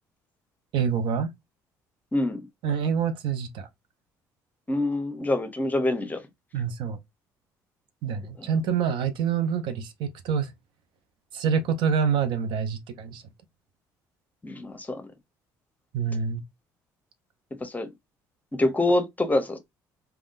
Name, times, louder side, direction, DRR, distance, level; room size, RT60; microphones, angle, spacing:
voice 1, 0.7-1.3 2.6-3.7 6.5-7.0 8.0-10.5 11.3-13.2 15.9-16.4, right 7 dB, 70° right, 0.5 m, -26 dB
voice 2, 2.1-2.5 4.7-6.2 8.4-8.5 14.4-15.1 17.6-17.9 18.5-19.6, left 2 dB, 20° left, 0.7 m, -26 dB
3.5 x 2.2 x 2.4 m
supercardioid pair, 65°, 9 cm